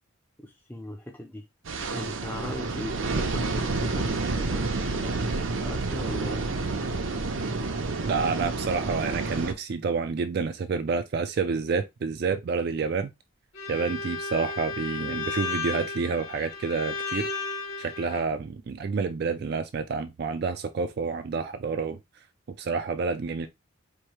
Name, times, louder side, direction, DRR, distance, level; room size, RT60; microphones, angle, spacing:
voice 1, 0.4-1.4 1.9-4.6 4.9-6.4, left 1 dB, 10° left, 0.5 m, -39 dB
sound 1, 1.6-9.5, right 3 dB, 75° right, 0.7 m, -29 dB
voice 2, 8.0-13.1 13.7-17.3 17.8-22.0 22.6-23.5, right 5 dB, 50° right, 0.3 m, -29 dB
Bowed string instrument, 13.5-18.3, left 4 dB, 75° left, 2.0 m, -34 dB
4.6 x 2.7 x 3.0 m
head